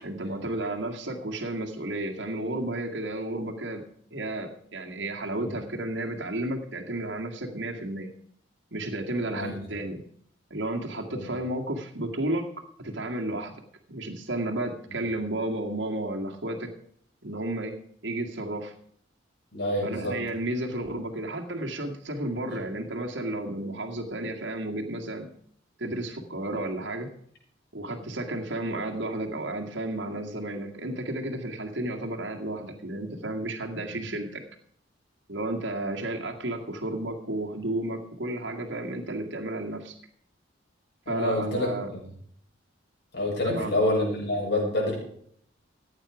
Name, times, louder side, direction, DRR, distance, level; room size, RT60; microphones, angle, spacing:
voice 1, 0.0-3.8 4.1-8.1 8.7-10.0 10.5-12.5 12.8-13.5 13.9-16.7 17.2-17.7 18.0-18.7 19.8-25.3 25.8-27.1 27.7-34.4 35.3-40.0 41.1-41.9 43.4-43.7, right 1 dB, 70° right, 2 dB, 2.0 m, -32 dB
voice 2, 19.5-20.2 22.5-22.6 41.1-41.7 43.1-44.9, left 1 dB, 60° left, -2 dB, 7.1 m, -27 dB
15.0 x 9.5 x 4.9 m, 0.64 s
head